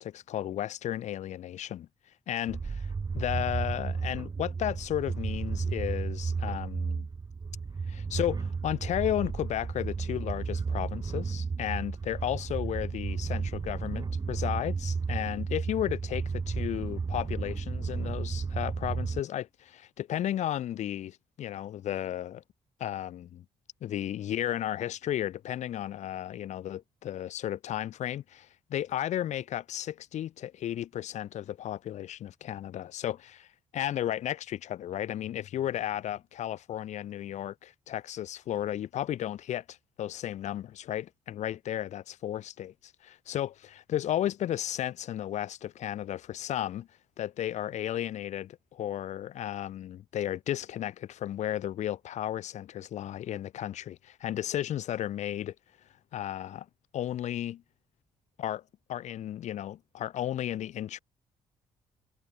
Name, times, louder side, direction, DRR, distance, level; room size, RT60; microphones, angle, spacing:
voice 1, 0.0-1.9 2.3-7.1 7.9-22.4 22.8-23.4 23.8-33.5 33.7-46.9 47.2-55.5 56.1-56.7 56.9-57.6 58.4-58.6 58.9-61.0, left 11 dB, 75° left, 6.0 m, -34 dB
sound 1, 2.5-19.2, right 5 dB, 35° right, 4.6 m, -33 dB
cardioid pair, 100°, 12 cm